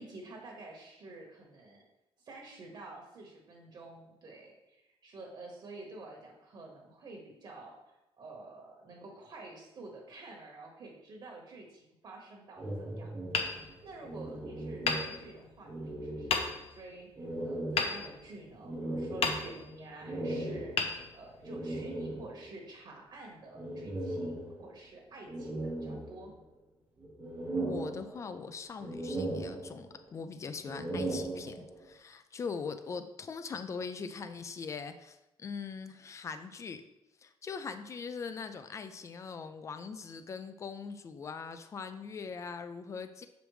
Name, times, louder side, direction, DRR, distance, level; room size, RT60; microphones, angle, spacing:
voice 1, 0.0-1.8 2.2-7.8 8.1-13.1 13.4-26.3, right 2 dB, 50° right, 0 dB, 1.3 m, -49 dB
sound 1, 12.6-15.4 15.6-16.8 17.2-22.6 23.5-24.8 25.3-26.6 27.0-28.5 28.8-30.1 30.6-31.9, right 1 dB, 20° right, 1.0 m, -38 dB
Hammer, 13.3-14.3 14.8-15.7 16.3-16.9 17.8-18.7 19.2-19.9 20.7-21.7, left 5 dB, 80° left, 0.8 m, -34 dB
voice 2, 27.6-36.8 37.2-43.3, left 5 dB, 30° left, 9 dB, 0.4 m, -41 dB
7.4 x 5.1 x 3.2 m, 0.95 s
wide cardioid pair, 170°, 10 cm